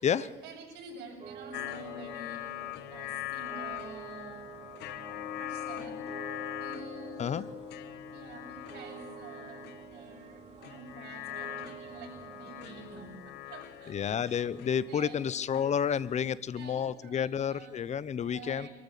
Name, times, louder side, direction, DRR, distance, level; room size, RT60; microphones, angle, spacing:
voice 1, 0.0-4.5 4.9-6.1 6.6-7.5 8.1-9.6 9.9-14.5 14.9-15.2 16.5-17.9 18.2-18.7, right 3 dB, 85° right, 0 dB, 7.7 m, -48 dB
sound 1, 1.2-13.2, right 8 dB, 35° right, 1.0 m, -49 dB
sound 2, 1.5-16.1, left 12 dB, 85° left, 1.4 m, -42 dB
voice 2, 13.9-18.7, left 8 dB, 45° left, 19 dB, 0.9 m, -30 dB
24.5 x 14.0 x 8.3 m, 1.1 s
cardioid pair, 110°, 17 cm